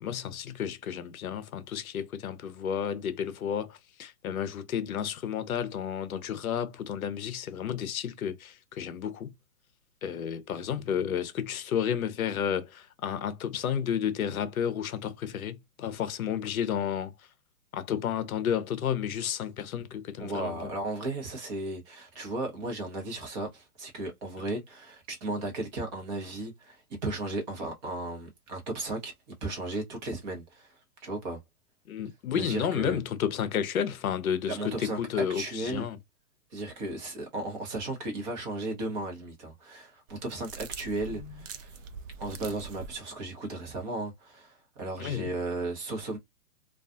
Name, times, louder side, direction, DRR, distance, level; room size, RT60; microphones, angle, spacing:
voice 1, 0.0-9.3 10.0-17.1 17.7-20.7 31.9-36.0 41.2-41.3 45.0-45.3, left 8 dB, 65° left, 0.6 m, -31 dB
voice 2, 20.2-29.1 29.4-30.7 31.0-31.4 32.3-33.0 34.5-35.9 36.5-41.8 42.2-46.2, right 2 dB, 30° right, 0.8 m, -35 dB
sound 1, 40.1-43.0, right 5 dB, 55° right, 0.6 m, -43 dB
2.3 x 2.3 x 2.5 m
hypercardioid pair, 135°, 47 cm